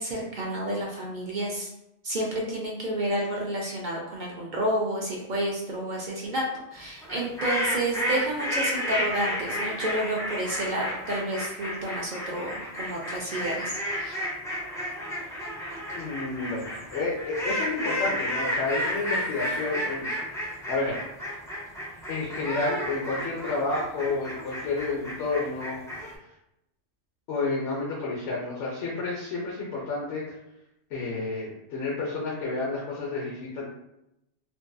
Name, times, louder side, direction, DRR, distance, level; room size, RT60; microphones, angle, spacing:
voice 1, 0.0-1.7 2.0-6.4 6.7-14.3, right 1 dB, 60° right, -2 dB, 0.5 m, -30 dB
sound 1, 7.0-26.1, equal, 5° left, 0.3 m, -31 dB
voice 2, 15.9-20.1 20.7-21.0 22.1-25.9 27.3-30.4 30.9-33.7, left 3 dB, 70° left, -4 dB, 0.9 m, -30 dB
2.6 x 2.4 x 2.2 m, 0.85 s
omnidirectional pair, 1.2 m